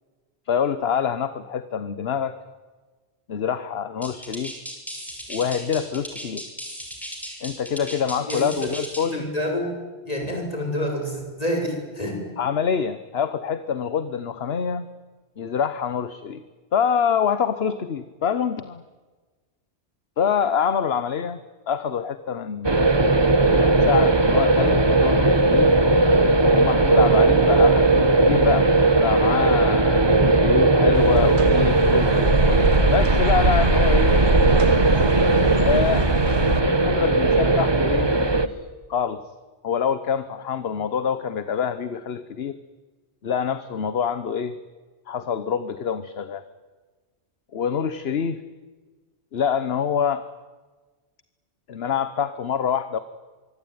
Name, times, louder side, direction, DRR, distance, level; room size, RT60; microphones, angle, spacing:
voice 1, 0.5-2.4 3.3-4.5 5.3-6.5 7.4-9.3 12.4-14.9 15.4-16.4 16.7-18.8 20.2-21.4 21.7-22.8 23.4-25.7 26.5-34.2 35.6-36.1 36.6-39.2 39.6-42.6 43.2-44.6 45.1-46.4 47.5-48.4 49.3-50.3 51.7-53.0, left 7 dB, 65° left, 13 dB, 1.2 m, -26 dB
sound 1, 4.0-9.2, equal, ahead, 5.9 m, -36 dB
voice 2, 8.3-8.7 9.1-9.7 10.1-12.2, equal, 35° left, 2 dB, 6.7 m, -28 dB
sound 2, 22.6-38.5, right 2 dB, 25° right, 1.2 m, -18 dB
sound 3, 30.9-36.6, right 2 dB, 45° right, 1.8 m, -22 dB
25.0 x 24.0 x 9.5 m, 1.3 s
omnidirectional pair, 1.2 m